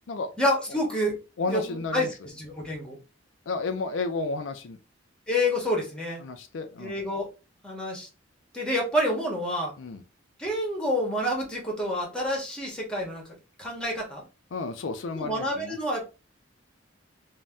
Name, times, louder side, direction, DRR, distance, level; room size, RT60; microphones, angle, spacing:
voice 1, 0.4-1.2 1.5-3.0 5.3-6.2 6.8-7.3 7.6-8.1 8.5-9.7 10.4-13.2 13.6-14.2 15.1-16.1, left 1 dB, 5° left, 0.9 m, -28 dB
voice 2, 1.4-2.1 3.5-4.8 6.2-7.0 9.8-10.0 14.5-15.8, left 3 dB, 85° left, 0.4 m, -32 dB
2.6 x 2.1 x 3.3 m
head